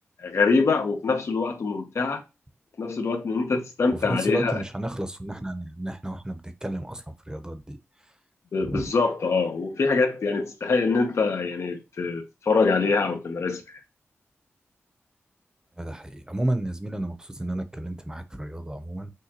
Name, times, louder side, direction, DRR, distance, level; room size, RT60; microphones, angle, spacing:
voice 1, 0.2-2.2 2.8-4.6 8.5-13.6, left 4 dB, 70° left, 1.0 m, -24 dB
voice 2, 4.0-7.8 8.6-8.9 15.8-19.1, right 1 dB, 15° right, 0.8 m, -32 dB
6.6 x 2.5 x 2.9 m
cardioid pair, 55°, 5 cm